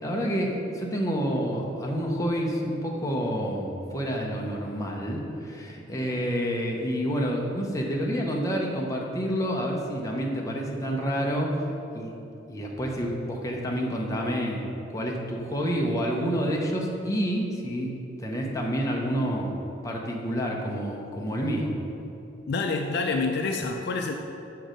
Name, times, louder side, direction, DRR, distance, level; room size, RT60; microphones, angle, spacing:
voice 1, 0.0-11.6 11.9-12.1 12.5-17.9 18.2-19.6 19.8-21.7, equal, 15° left, -1 dB, 0.7 m, -28 dB
voice 2, 22.5-24.1, left 3 dB, 55° left, 3 dB, 0.4 m, -27 dB
6.4 x 4.6 x 5.0 m, 2.8 s
head